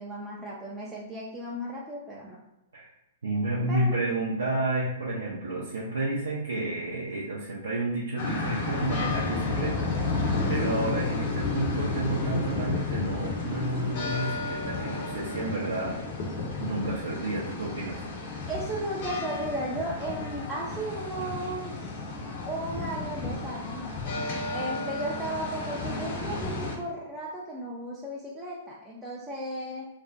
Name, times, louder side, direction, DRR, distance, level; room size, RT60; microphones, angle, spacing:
voice 1, 0.0-2.4 3.7-3.9 18.5-22.0 22.5-23.9 24.5-29.9, right 1 dB, 10° right, -6 dB, 0.4 m, -35 dB
voice 2, 3.2-16.0 16.6-18.0, right 2 dB, 75° right, -6 dB, 0.5 m, -31 dB
sound 1, 8.2-26.8, left 3 dB, 50° left, 0.6 m, -32 dB
2.5 x 2.1 x 2.4 m, 0.91 s
figure-of-eight pair, 110°, 0 cm